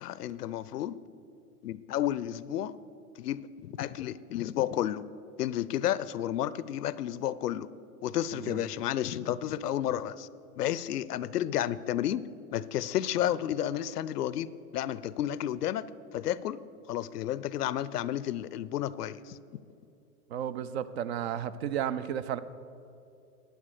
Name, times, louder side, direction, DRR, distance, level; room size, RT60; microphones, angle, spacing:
voice 1, 0.0-1.0 1.6-2.8 3.2-5.0 5.4-7.7 8.0-10.3 10.6-12.2 12.5-16.6 16.9-19.4, left 11 dB, 80° left, 18 dB, 0.6 m, -31 dB
voice 2, 20.3-22.4, right 9 dB, 45° right, 16 dB, 0.5 m, -33 dB
11.5 x 9.3 x 6.6 m, 2.6 s
hypercardioid pair, 120°, 46 cm